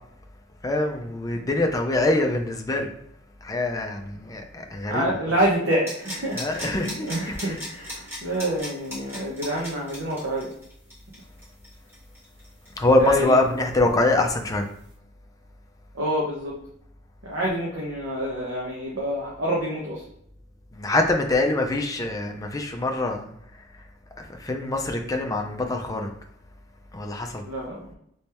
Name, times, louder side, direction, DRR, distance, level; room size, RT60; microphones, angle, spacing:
voice 1, 0.6-2.9 3.4-5.3 6.3-7.6 12.8-14.7 20.7-23.3 24.2-26.1 26.9-27.4, left 2 dB, 20° left, 3 dB, 0.4 m, -24 dB
voice 2, 4.9-10.5 13.0-13.4 15.9-16.6 17.2-20.1 27.4-27.9, right 1 dB, 75° right, -5 dB, 0.8 m, -27 dB
sound 1, 5.9-13.4 13.7-13.8, equal, 15° right, 1.4 m, -37 dB
3.3 x 3.1 x 2.9 m, 0.73 s
head